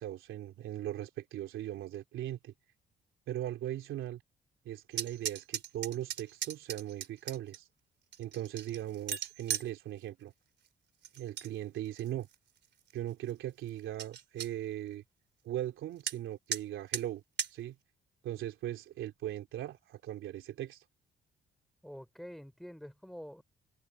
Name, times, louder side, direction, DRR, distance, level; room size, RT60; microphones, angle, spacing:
voice 1, 0.0-2.5 3.3-4.2 4.6-7.7 8.2-10.3 11.2-12.3 12.9-15.0 15.4-17.2 17.5-17.7 18.2-20.8, right 12 dB, 80° right, 3.3 m, -39 dB
sound 1, 4.9-7.6 8.1-9.7 11.0-11.5 11.9-12.3 12.9-13.0 13.3-13.4 13.7-13.8 14.0-14.5 16.1-16.2 16.5-16.6 16.9-17.0 17.4-17.5, right 7 dB, 60° right, 3.7 m, -37 dB
voice 2, 21.8-23.4, equal, ahead, 4.7 m, -47 dB
cardioid pair, 90°, 20 cm